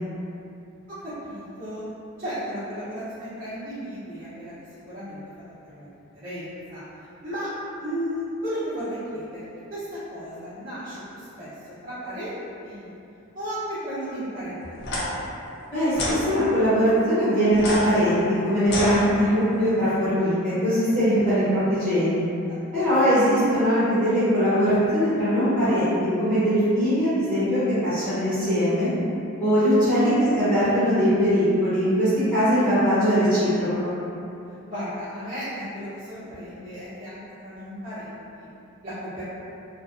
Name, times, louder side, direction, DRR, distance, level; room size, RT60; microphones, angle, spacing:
voice 1, 0.9-1.9 2.2-5.2 5.6-7.5 7.8-9.4 9.7-12.3 12.6-12.9 13.3-14.8 15.1-15.3 22.5-22.6 30.2-30.4 34.7-38.5 38.8-39.3, equal, 40° right, -17 dB, 0.7 m, -34 dB
sound 1, 14.8-15.0 15.9-16.2 17.5-19.5, left 1 dB, 50° left, 0.5 m, -29 dB
voice 2, 15.7-22.2 22.7-28.9 29.4-33.9, equal, 5° left, -17 dB, 0.7 m, -21 dB
2.5 x 2.2 x 2.5 m, 2.8 s
head